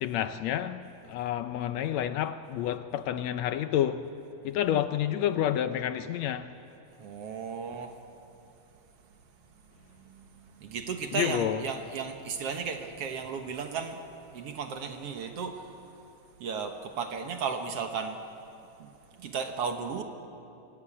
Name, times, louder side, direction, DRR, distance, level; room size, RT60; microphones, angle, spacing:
voice 1, 0.0-0.8 1.1-4.1 4.4-6.5 11.1-11.6, left 11 dB, 75° left, 1.7 m, -29 dB
voice 2, 7.0-7.9 10.0-14.1 14.3-15.7 16.4-18.2 18.8-18.9 19.2-20.0, right 6 dB, 60° right, 2.0 m, -35 dB
25.0 x 18.0 x 8.7 m
omnidirectional pair, 3.4 m